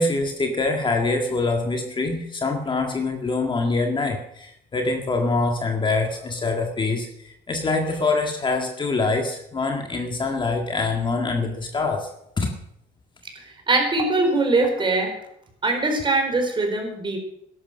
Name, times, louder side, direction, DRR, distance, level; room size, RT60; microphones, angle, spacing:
voice 1, 0.0-12.1 12.4-12.5, left 3 dB, 30° left, 3 dB, 1.8 m, -24 dB
voice 2, 13.3-15.1 15.6-17.2, right 2 dB, 30° right, 3 dB, 4.4 m, -22 dB
13.5 x 11.5 x 6.5 m, 0.78 s
cardioid pair, 110°, 17 cm